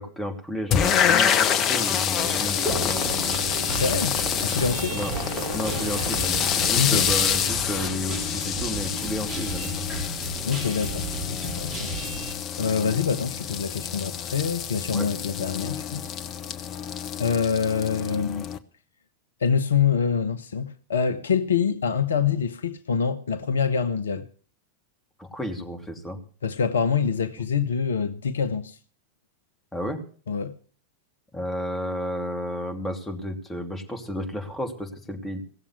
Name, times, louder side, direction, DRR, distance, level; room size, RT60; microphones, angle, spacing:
voice 1, 0.0-1.3 1.7-3.4 4.9-5.1 5.5-9.7 14.9-15.1 25.2-26.2 29.7-30.0 31.3-35.4, left 1 dB, 10° left, 2.9 m, -32 dB
sound 1, 0.7-18.6, left 8 dB, 30° left, 1.0 m, -27 dB
sound 2, 2.2-7.7, right 3 dB, 40° right, 4.1 m, -36 dB
Guitar, 2.6-12.3, right 2 dB, 25° right, 3.7 m, -34 dB
voice 2, 3.7-5.0 6.8-7.1 10.4-11.9 12.6-16.1 17.2-18.5 19.4-24.2 26.4-28.8 30.3-30.5, left 6 dB, 70° left, 0.8 m, -25 dB
17.0 x 7.2 x 8.3 m
figure-of-eight pair, 90°, 0 cm